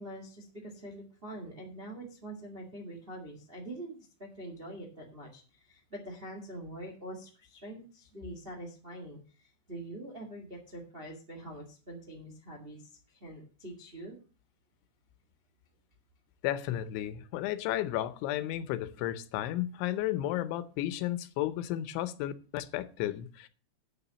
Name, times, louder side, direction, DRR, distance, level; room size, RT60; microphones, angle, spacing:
voice 1, 0.0-14.2, right 1 dB, 65° right, 0.5 m, -45 dB
voice 2, 16.4-23.5, left 13 dB, 85° left, 3.1 m, -33 dB
9.0 x 7.0 x 6.8 m
omnidirectional pair, 5.2 m